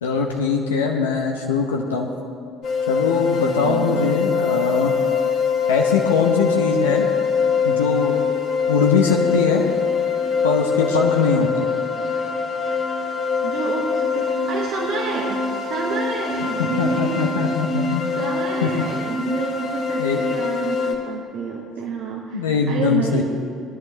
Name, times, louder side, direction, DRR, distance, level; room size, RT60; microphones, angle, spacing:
voice 1, 0.0-2.1 2.9-4.9 5.7-7.1 7.6-8.2 8.7-9.6 10.4-11.6 16.6-18.0 18.6-18.7 20.0-20.2 22.3-23.2, left 5 dB, 75° left, 1 dB, 0.8 m, -21 dB
sound 1, 2.6-20.9, left 5 dB, 50° left, 2.7 m, -23 dB
voice 2, 3.4-4.2 11.3-11.5 13.4-23.2, right 5 dB, 55° right, -1 dB, 1.1 m, -29 dB
19.5 x 11.0 x 3.1 m, 2.5 s
figure-of-eight pair, 55°, 0 cm